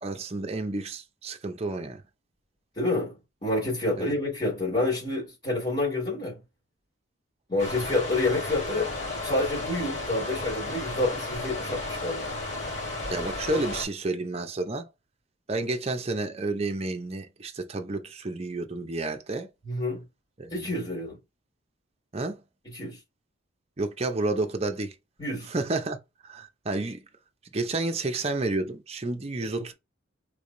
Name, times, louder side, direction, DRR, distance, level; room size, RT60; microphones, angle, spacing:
voice 1, 0.0-2.0 4.0-4.2 13.1-14.9 15.5-19.5 20.4-20.7 22.1-22.4 23.8-24.9 25.5-26.0 26.2-27.0 27.5-29.7, right 2 dB, 30° right, 0.5 m, -30 dB
voice 2, 2.8-3.1 3.4-6.4 7.5-8.9 9.2-12.2 19.6-20.0 20.5-21.2 22.7-23.0 25.2-25.5, left 2 dB, 30° left, 2.2 m, -28 dB
sound 1, 7.6-13.9, left 2 dB, 70° left, 2.0 m, -33 dB
3.3 x 3.3 x 2.6 m
head